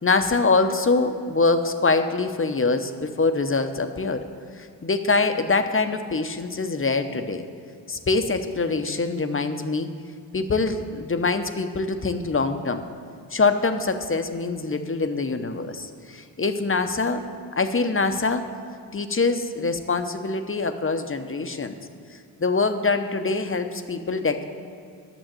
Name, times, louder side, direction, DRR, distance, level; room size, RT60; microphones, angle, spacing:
voice 1, 0.0-4.2 4.6-7.5 7.9-9.9 10.3-12.8 13.3-17.2 17.6-18.4 18.9-21.8 22.4-24.4, left 3 dB, 30° left, 8 dB, 0.8 m, -24 dB
9.0 x 6.2 x 7.6 m, 2.4 s
cardioid pair, 45°, 43 cm